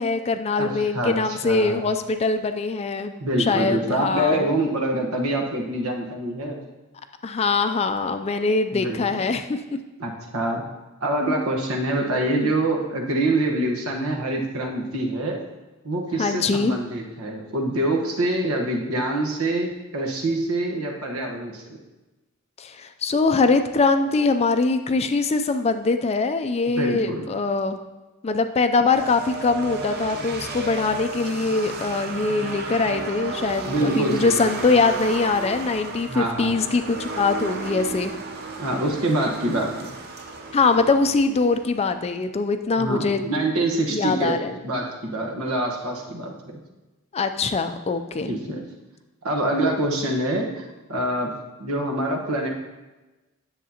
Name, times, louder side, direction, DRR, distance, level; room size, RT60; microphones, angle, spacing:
voice 1, 0.0-3.1 3.4-4.5 7.2-9.6 16.2-16.8 22.6-27.8 28.2-38.1 40.5-43.2 43.9-44.5 47.1-48.3, left 3 dB, 30° left, 8 dB, 0.4 m, -22 dB
voice 2, 0.6-1.8 3.2-6.6 8.7-9.0 10.0-10.6 11.0-15.4 15.8-21.6 26.8-27.3 33.7-34.5 36.1-36.6 38.6-39.9 42.8-46.6 48.3-48.6 49.2-51.3 51.6-52.5, right 1 dB, 80° right, 1 dB, 1.2 m, -25 dB
sound 1, 28.9-42.0, right 3 dB, 50° right, 0.8 m, -34 dB
10.0 x 7.4 x 2.8 m, 1.1 s
head